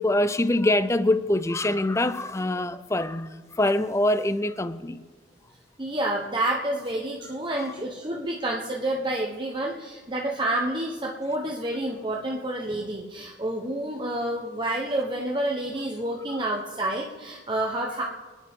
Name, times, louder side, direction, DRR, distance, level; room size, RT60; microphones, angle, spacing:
voice 1, 0.0-3.3 3.6-5.0, left 1 dB, 15° left, 0.5 m, -24 dB
voice 2, 5.8-18.0, right 1 dB, 25° right, 1.1 m, -29 dB
25.5 x 10.5 x 3.7 m
head